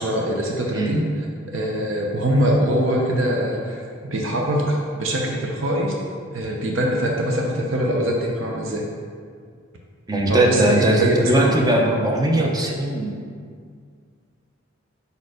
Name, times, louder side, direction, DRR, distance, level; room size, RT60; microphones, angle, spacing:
voice 1, 0.0-3.9 4.1-5.9 6.3-8.8 10.3-11.5, equal, 70° right, 0 dB, 0.7 m, -23 dB
voice 2, 10.1-13.1, right 1 dB, 20° right, 0 dB, 0.6 m, -19 dB
5.3 x 4.4 x 4.9 m, 2.1 s
head